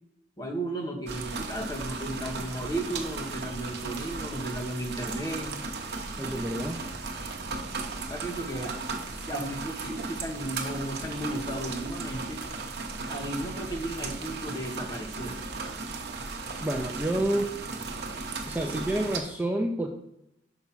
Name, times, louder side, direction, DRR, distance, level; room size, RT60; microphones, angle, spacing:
voice 1, 0.4-5.6 8.1-8.7 9.3-12.4 13.1-15.4, right 1 dB, 20° left, 2 dB, 1.2 m, -34 dB
sound 1, 1.1-19.2, right 3 dB, 60° right, 0.9 m, -36 dB
voice 2, 6.2-6.8 16.6-17.6 18.5-19.9, right 1 dB, 10° right, 2 dB, 0.5 m, -29 dB
6.0 x 5.1 x 5.7 m, 0.82 s
head